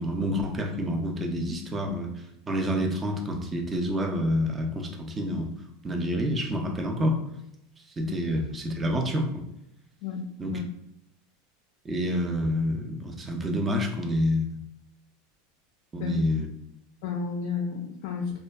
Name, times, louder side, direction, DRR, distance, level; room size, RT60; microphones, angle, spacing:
voice 1, 0.0-2.1 2.5-5.5 5.8-7.2 8.0-9.4 10.4-10.6 11.8-14.6 15.9-16.5, equal, 15° right, 2 dB, 0.4 m, -28 dB
voice 2, 10.0-10.6 16.0-16.1 17.0-18.3, left 6 dB, 60° left, 2 dB, 0.3 m, -32 dB
2.6 x 2.2 x 2.3 m, 0.81 s
supercardioid pair, 145°, 0 cm